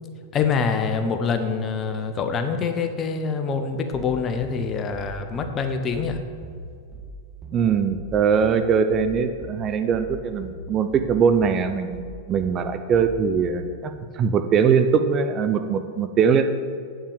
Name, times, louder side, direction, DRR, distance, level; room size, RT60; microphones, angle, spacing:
voice 1, 0.3-6.2, left 5 dB, 30° left, 7 dB, 0.8 m, -25 dB
sound 1, 3.9-13.7, right 1 dB, 15° right, 1.8 m, -39 dB
voice 2, 7.5-12.0 12.3-16.5, right 6 dB, 30° right, 9 dB, 0.5 m, -21 dB
8.6 x 5.7 x 5.0 m, 2.2 s
hypercardioid pair, 95°, 0 cm